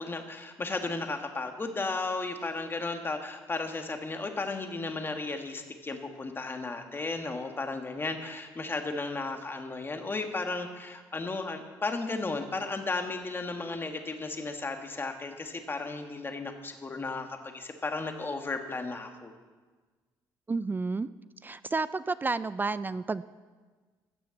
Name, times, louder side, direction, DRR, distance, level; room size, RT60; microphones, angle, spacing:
voice 1, 0.0-19.3, left 3 dB, 25° left, 5 dB, 1.6 m, -34 dB
voice 2, 20.5-21.1 21.4-23.2, right 3 dB, 25° right, 16 dB, 0.4 m, -31 dB
15.5 x 7.0 x 7.1 m, 1.4 s
cardioid pair, 80°, 8 cm